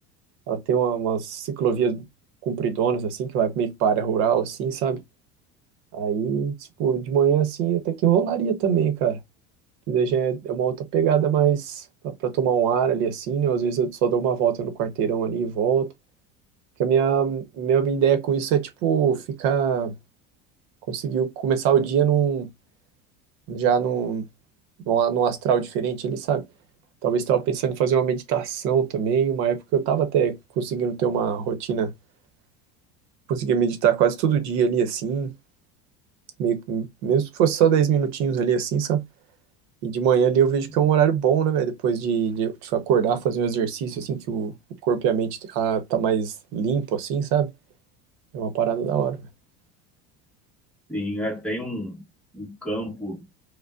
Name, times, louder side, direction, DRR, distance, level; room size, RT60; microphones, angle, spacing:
voice 1, 0.5-2.0 2.5-5.0 5.9-6.5 6.8-9.2 9.9-15.9 16.8-19.9 20.9-22.5 23.5-24.2 24.9-26.4 27.0-31.9 33.3-35.3 36.4-39.0 39.8-44.5 44.8-47.5 48.3-49.2, right 8 dB, 60° right, 0.9 m, -23 dB
voice 2, 50.9-52.0 52.3-53.2, equal, 5° left, 1.2 m, -30 dB
5.0 x 2.1 x 2.4 m
cardioid pair, 175°, 31 cm